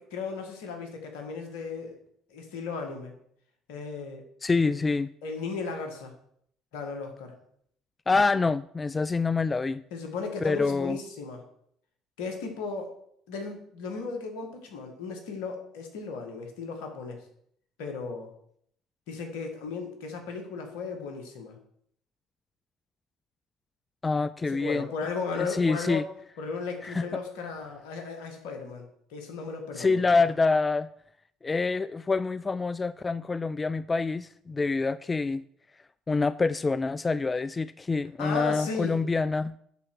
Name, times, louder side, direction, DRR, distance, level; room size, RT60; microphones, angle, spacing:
voice 1, 0.0-2.0 2.3-3.1 3.7-4.2 4.7-4.8 5.2-6.1 6.7-7.3 9.9-11.4 12.2-13.0 13.3-17.2 17.8-18.3 19.1-21.6 24.5-26.0 26.4-28.9 29.1-30.0 38.2-39.0, left 4 dB, 75° left, 4 dB, 1.9 m, -35 dB
voice 2, 4.4-5.1 8.1-9.8 10.4-11.0 24.0-24.9 25.4-26.0 26.8-27.0 29.8-30.9 31.4-35.4 36.1-39.5, left 4 dB, 25° left, 16 dB, 0.3 m, -26 dB
11.0 x 4.4 x 6.3 m, 0.68 s
hypercardioid pair, 60°, 0 cm